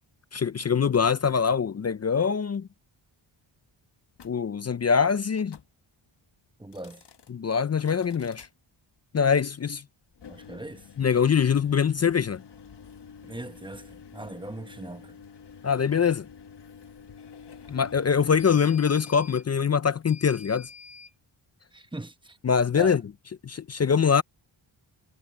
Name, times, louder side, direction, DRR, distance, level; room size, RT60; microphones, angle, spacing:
voice 1, 0.3-2.7 4.2-5.6 7.3-8.5 9.1-9.8 11.0-12.4 15.6-16.3 17.7-20.7 22.4-23.0 23.4-24.2, left 6 dB, 35° left, 0.4 m, -23 dB
sound 1, 4.1-4.4 5.3-5.7 6.6-7.3 7.8-8.5 10.1-21.1, left 6 dB, 55° left, 1.3 m, -48 dB
voice 2, 6.6-7.0 10.3-10.8 13.2-15.2 21.7-22.4 22.7-23.0, right 2 dB, 10° right, 1.0 m, -40 dB
wide cardioid pair, 140°, 50 cm